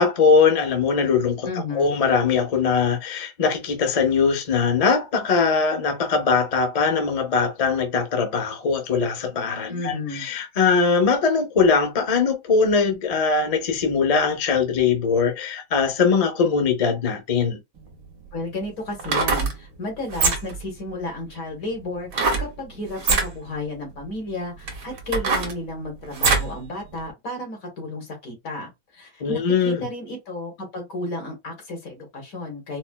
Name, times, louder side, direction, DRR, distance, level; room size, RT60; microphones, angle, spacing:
voice 1, 0.0-1.5 1.7-17.6 29.2-29.9, left 5 dB, 55° left, 0.4 m, -21 dB
voice 2, 1.4-2.0 9.7-10.3 18.3-32.8, left 2 dB, 70° left, 1.8 m, -33 dB
sound 1, 17.8-17.9 18.9-19.5 20.1-20.6 22.1-22.5 23.0-23.3 24.0-24.1 24.7-26.5 27.0-27.1, right 4 dB, 75° right, 1.3 m, -22 dB
4.1 x 2.1 x 2.2 m
omnidirectional pair, 1.5 m